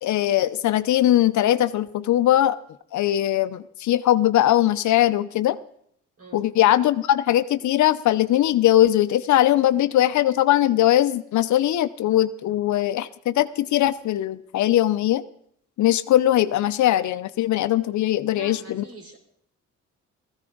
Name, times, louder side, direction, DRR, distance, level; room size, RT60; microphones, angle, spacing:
voice 1, 0.0-2.6 2.9-5.6 6.3-15.2 15.8-18.8, left 13 dB, 70° left, 13 dB, 0.7 m, -20 dB
voice 2, 6.2-6.5 18.3-19.2, right 3 dB, 50° right, 2 dB, 4.2 m, -43 dB
16.5 x 15.0 x 3.9 m, 0.69 s
cardioid pair, 90°, 30 cm